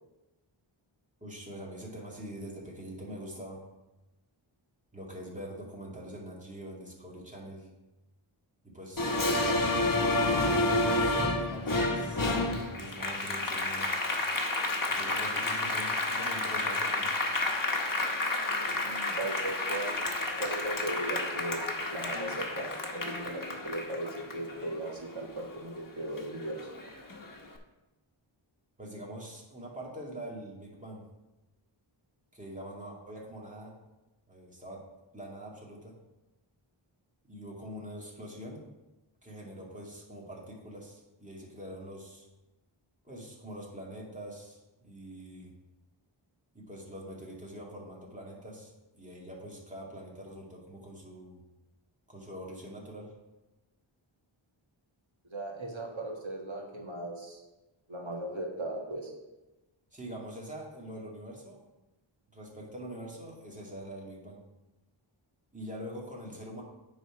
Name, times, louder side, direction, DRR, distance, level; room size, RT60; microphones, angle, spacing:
voice 1, 1.2-3.6 4.9-7.7 8.6-13.9 14.9-17.1 28.8-31.1 32.3-33.7 34.3-34.8 35.1-36.0 37.3-38.7 39.2-42.2 43.0-45.5 46.5-51.4 52.1-53.1 59.9-61.6 62.3-64.4 65.5-66.6, right 1 dB, 15° right, -3 dB, 2.1 m, -44 dB
Applause, 9.0-25.8 26.2-27.3, left 2 dB, 40° left, 1.2 m, -30 dB
voice 2, 18.6-26.6 55.3-57.4 57.9-59.1, right 1 dB, 70° right, -1 dB, 1.9 m, -37 dB
9.6 x 4.1 x 5.0 m, 1.0 s
wide cardioid pair, 55°, 49 cm